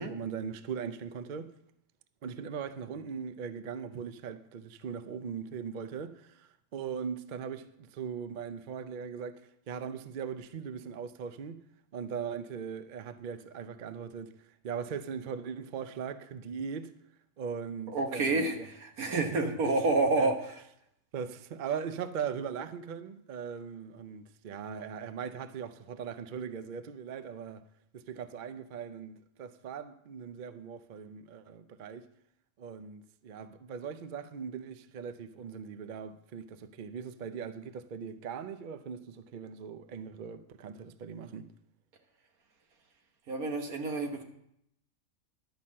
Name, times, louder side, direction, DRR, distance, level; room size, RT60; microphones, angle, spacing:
voice 1, 0.0-1.5 2.2-11.6 11.9-16.9 17.4-18.7 19.2-19.9 20.2-20.3 21.1-27.6 27.9-32.1 32.6-41.5, right 7 dB, 55° right, 0.5 m, -40 dB
voice 2, 17.9-20.6 43.3-44.2, right 2 dB, 85° right, 1.8 m, -29 dB
11.5 x 5.6 x 7.4 m
omnidirectional pair, 1.5 m